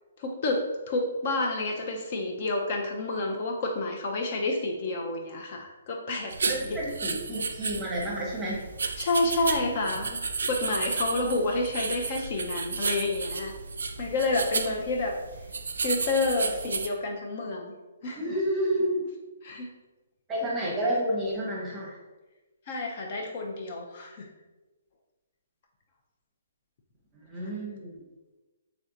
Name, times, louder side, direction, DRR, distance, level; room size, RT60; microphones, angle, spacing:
voice 1, 0.2-6.8 9.0-10.2 10.5-13.5 14.0-15.1 15.8-17.7 18.0-18.4 19.4-19.7 22.7-24.3, left 2 dB, 40° left, 1 dB, 0.5 m, -29 dB
sound 1, 6.3-16.9, right 4 dB, 90° right, 0.3 m, -33 dB
voice 2, 6.4-8.6 18.2-19.0 20.3-21.9 27.3-27.9, right 1 dB, 15° right, -4 dB, 0.8 m, -30 dB
3.3 x 2.7 x 3.7 m, 1.1 s
hypercardioid pair, 160°, 0 cm